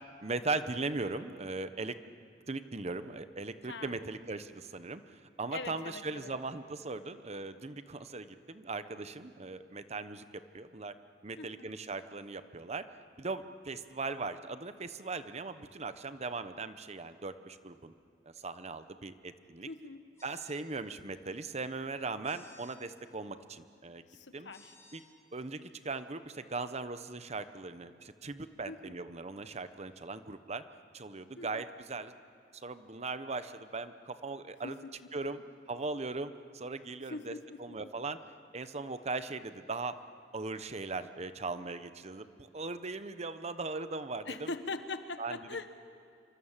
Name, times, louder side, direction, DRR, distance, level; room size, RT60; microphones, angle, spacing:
voice 1, 0.2-2.0 2.5-10.2 10.5-10.9 11.2-12.9 13.2-17.9 18.4-19.7 20.2-24.0 24.3-24.5 24.9-25.0 25.3-25.6 25.8-30.6 30.9-32.1 32.5-34.8 35.1-35.4 35.7-38.2 38.5-40.0 40.3-42.3 42.5-44.5 45.2-45.4, right 3 dB, 40° right, 11 dB, 1.0 m, -39 dB
voice 2, 3.6-4.0 5.5-6.3 11.4-11.7 19.7-20.0 24.1-24.7 28.7-29.0 31.4-31.6 34.6-35.1 37.1-37.8 44.2-45.7, left 3 dB, 75° left, 9 dB, 1.5 m, -42 dB
sound 1, 20.2-20.6 22.2-22.8 24.5-25.0, left 2 dB, 15° left, 2.8 m, -58 dB
27.5 x 24.5 x 7.4 m, 2.3 s
head